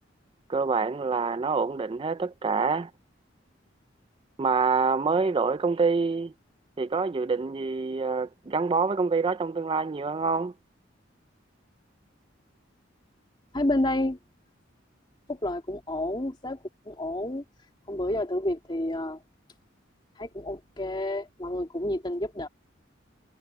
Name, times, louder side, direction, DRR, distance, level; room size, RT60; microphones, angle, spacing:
voice 1, 0.5-2.9 4.4-6.3 6.8-10.5, right 4 dB, 25° right, 0.4 m, -26 dB
voice 2, 13.5-14.2 15.3-16.6 16.9-17.4 17.9-19.2 20.2-22.5, left 1 dB, 25° left, 2.2 m, -29 dB
head